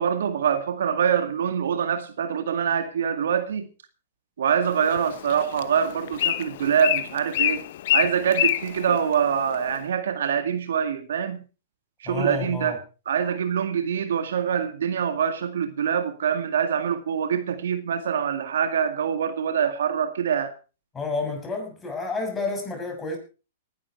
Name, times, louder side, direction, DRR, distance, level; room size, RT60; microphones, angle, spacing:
voice 1, 0.0-3.7 4.4-7.6 7.9-11.4 12.0-12.8 13.1-20.5, right 7 dB, 70° right, 2.0 m, -24 dB
Bird, 4.6-9.8, left 12 dB, 60° left, 1.0 m, -28 dB
voice 2, 12.0-12.8 20.9-23.2, left 3 dB, 15° left, 6.6 m, -30 dB
19.5 x 11.0 x 4.6 m
hypercardioid pair, 115°, 0 cm